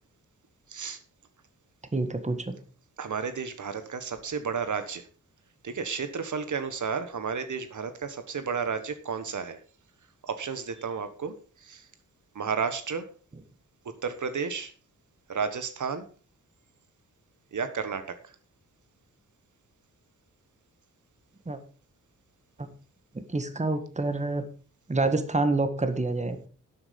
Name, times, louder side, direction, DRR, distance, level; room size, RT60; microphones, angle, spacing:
voice 1, 0.7-1.0 3.0-5.1 5.6-9.6 10.2-11.9 12.3-13.1 13.8-14.7 15.3-16.1 17.5-18.4, right 6 dB, 65° right, 10 dB, 1.4 m, -32 dB
voice 2, 1.9-2.5 21.4-21.6 22.6-22.7 23.1-24.5 24.9-26.4, right 2 dB, 20° right, 9 dB, 1.7 m, -27 dB
12.0 x 7.9 x 5.3 m, 0.38 s
wide cardioid pair, 100°, 32 cm